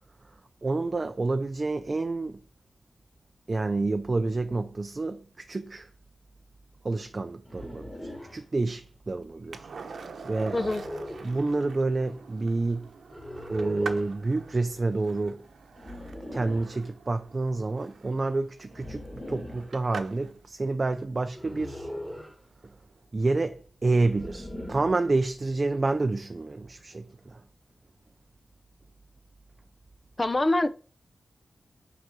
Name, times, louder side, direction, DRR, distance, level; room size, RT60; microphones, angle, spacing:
voice 1, 0.6-2.4 3.5-5.9 6.8-7.9 8.3-9.7 9.9-10.6 11.2-12.9 13.5-15.4 16.3-21.9 23.1-27.4, right 3 dB, 30° right, 0.5 m, -28 dB
sound 1, 7.5-8.4 10.4-11.4 13.1-14.1 15.8-16.8 18.7-19.7 21.4-22.4 24.0-25.1, left 1 dB, 5° left, 2.1 m, -40 dB
Skateboard, 9.5-20.4 23.0-23.1, right 5 dB, 75° right, 1.0 m, -44 dB
voice 2, 10.5-10.8 30.2-30.7, left 2 dB, 25° left, 0.6 m, -24 dB
6.5 x 4.9 x 6.3 m
wide cardioid pair, 145°, 0 cm